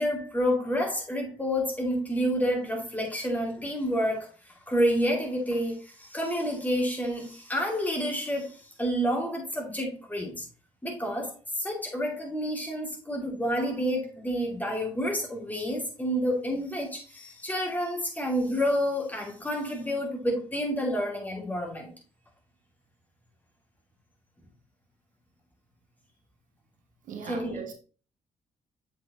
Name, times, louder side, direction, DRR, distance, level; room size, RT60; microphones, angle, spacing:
voice 1, 0.0-4.3 4.7-10.4 10.8-21.9 27.2-27.7, equal, 10° left, 2.8 m, -29 dB
voice 2, 27.1-27.7, right 6 dB, 65° right, 1.0 m, -39 dB
7.2 x 4.7 x 3.1 m
hypercardioid pair, 50°, 14 cm